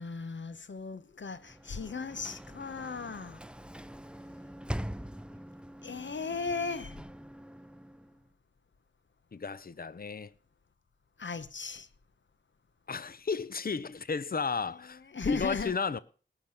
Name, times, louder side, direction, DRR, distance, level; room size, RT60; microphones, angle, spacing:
voice 1, 0.0-3.4 5.8-7.0 11.2-11.9 15.1-15.7, left 4 dB, 70° left, 1.1 m, -37 dB
Sliding door / Slam, 1.3-8.3, equal, 5° right, 0.6 m, -43 dB
voice 2, 9.3-10.3 12.9-16.0, left 5 dB, 50° left, 0.7 m, -33 dB
19.0 x 7.0 x 5.9 m
wide cardioid pair, 60°, 20 cm